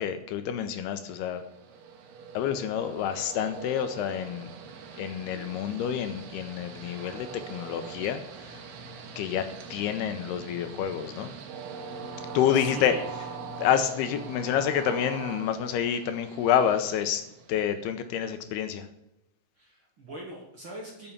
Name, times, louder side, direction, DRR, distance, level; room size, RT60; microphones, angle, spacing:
voice 1, 0.0-1.4 2.3-4.5 4.9-8.6 9.2-9.4 9.7-11.3 12.3-12.9 13.6-17.2 17.5-18.9, left 9 dB, 80° left, 9 dB, 2.6 m, -28 dB
Train, 1.1-17.9, right 5 dB, 70° right, 3.1 m, -42 dB
voice 2, 12.5-13.1 19.6-21.1, right 1 dB, 40° right, -2 dB, 2.0 m, -42 dB
11.0 x 7.0 x 7.2 m, 0.88 s
omnidirectional pair, 4.9 m